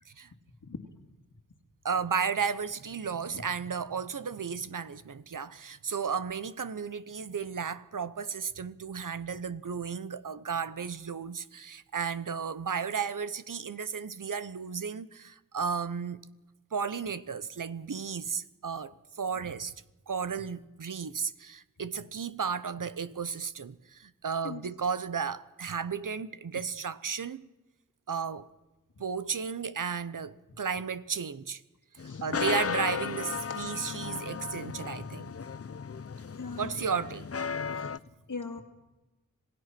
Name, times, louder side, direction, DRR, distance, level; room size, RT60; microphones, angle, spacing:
voice 1, 1.8-16.2 16.7-19.7 20.1-27.4 28.1-28.5 29.0-31.6 31.9-35.3 36.6-37.3, right 6 dB, 70° right, 1.0 m, -34 dB
sound 1, 32.0-38.0, left 6 dB, 45° left, 0.7 m, -35 dB
voice 2, 36.4-36.7 37.7-38.6, left 4 dB, 65° left, 2.3 m, -40 dB
26.5 x 17.0 x 6.1 m
cardioid pair, 45°, 33 cm